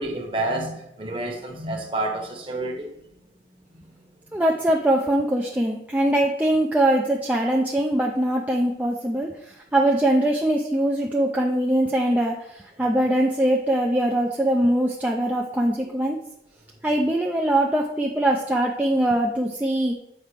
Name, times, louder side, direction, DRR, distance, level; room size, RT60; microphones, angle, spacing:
voice 1, 0.0-2.9 3.5-4.4, right 2 dB, 30° right, 2 dB, 1.0 m, -30 dB
voice 2, 4.3-16.2 16.8-19.9, right 1 dB, 10° right, 0 dB, 0.4 m, -22 dB
7.2 x 4.9 x 3.3 m, 0.82 s
head